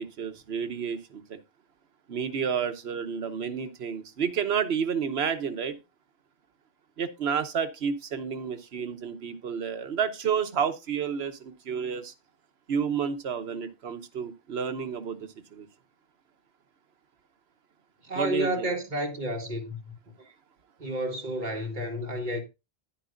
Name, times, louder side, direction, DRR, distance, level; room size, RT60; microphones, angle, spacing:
voice 1, 0.0-1.4 2.1-5.8 7.0-12.1 12.7-15.7 18.1-18.7, right 7 dB, 70° right, 1.1 m, -30 dB
voice 2, 18.0-19.9 20.8-22.4, equal, 45° right, 2.0 m, -31 dB
10.0 x 9.9 x 2.5 m
omnidirectional pair, 1.1 m